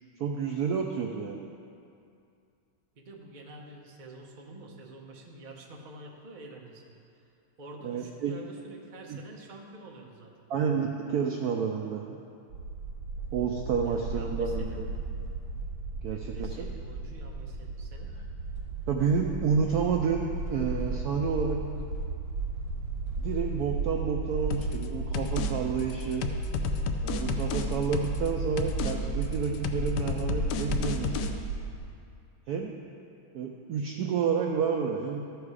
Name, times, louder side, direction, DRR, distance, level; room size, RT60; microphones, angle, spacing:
voice 1, 0.2-1.5 7.8-8.3 9.1-9.2 10.5-12.2 13.3-14.9 16.0-16.7 18.9-21.6 23.1-26.3 27.0-31.4 32.5-32.7 33.3-35.2, right 6 dB, 85° right, 2 dB, 0.8 m, -30 dB
voice 2, 3.0-7.0 7.6-10.3 13.8-14.8 16.0-18.1, right 2 dB, 40° right, -1 dB, 0.6 m, -47 dB
sound 1, 12.5-31.8, right 3 dB, 60° right, 2.1 m, -34 dB
sound 2, 24.5-24.9 25.1-25.5 25.8-28.3 28.6-28.9 29.2-31.3, left 5 dB, 70° left, 1.0 m, -32 dB
13.5 x 4.8 x 4.8 m, 2.5 s
omnidirectional pair, 2.2 m